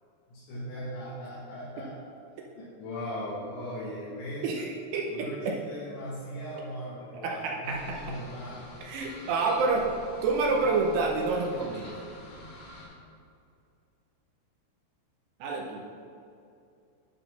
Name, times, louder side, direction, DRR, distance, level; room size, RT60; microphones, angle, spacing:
voice 1, 0.3-1.9 2.6-4.5 5.1-8.7, equal, 80° left, -9 dB, 3.7 m, -38 dB
voice 2, 4.4-5.6 7.2-8.2 8.8-9.8 10.2-11.9 15.4-15.8, right 3 dB, 80° right, -1 dB, 2.6 m, -28 dB
sound 1, 7.6-12.9, left 2 dB, 50° left, 2.2 m, -47 dB
10.0 x 3.9 x 5.5 m, 2.5 s
omnidirectional pair, 5.3 m